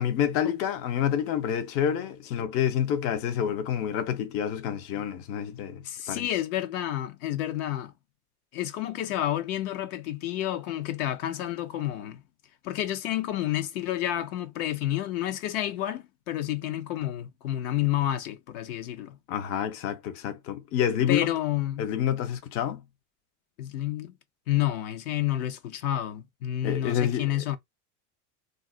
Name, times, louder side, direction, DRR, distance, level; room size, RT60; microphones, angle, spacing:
voice 1, 0.0-5.8 6.1-6.3 19.3-21.3 21.8-22.8 26.6-27.3, left 9 dB, 30° left, 0.4 m, -28 dB
voice 2, 5.8-7.9 8.5-12.2 12.6-19.2 21.1-21.9 23.6-24.1 24.5-27.6, left 13 dB, 65° left, 0.7 m, -30 dB
2.4 x 2.0 x 3.7 m
supercardioid pair, 120°, 46 cm